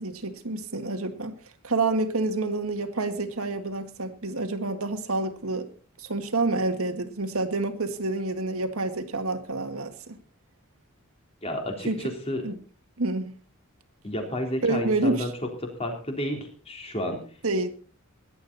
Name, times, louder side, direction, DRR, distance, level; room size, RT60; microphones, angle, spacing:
voice 1, 0.0-1.3 1.6-5.7 6.0-10.2 11.9-12.1 12.4-12.5 13.0-13.3 14.6-15.3 17.4-17.7, right 2 dB, 80° right, 8 dB, 1.9 m, -28 dB
voice 2, 11.4-12.4 14.0-15.3 15.8-17.2, left 1 dB, 25° left, 3 dB, 3.6 m, -31 dB
18.0 x 11.5 x 4.1 m, 0.39 s
head